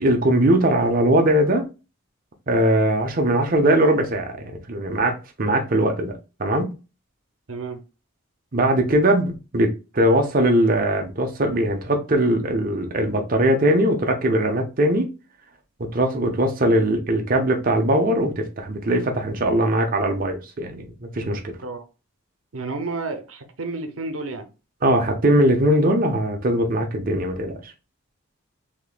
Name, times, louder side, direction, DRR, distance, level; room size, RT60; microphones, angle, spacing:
voice 1, 0.0-1.7 2.5-6.1 6.4-6.7 8.5-15.1 15.8-21.5 24.8-27.5, right 1 dB, 40° right, 0.7 m, -20 dB
voice 2, 7.5-7.8 21.6-21.8 22.5-24.5, right 3 dB, 75° right, 0.7 m, -31 dB
3.6 x 2.8 x 2.4 m
head